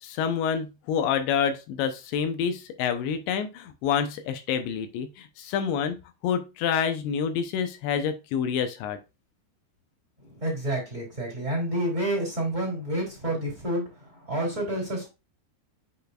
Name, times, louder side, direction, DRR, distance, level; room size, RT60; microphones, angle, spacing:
voice 1, 0.0-6.0 6.2-9.0, left 7 dB, 80° left, 3.0 m, -27 dB
voice 2, 10.2-15.1, right 1 dB, 20° right, 3.2 m, -29 dB
8.0 x 5.1 x 2.4 m
omnidirectional pair, 5.2 m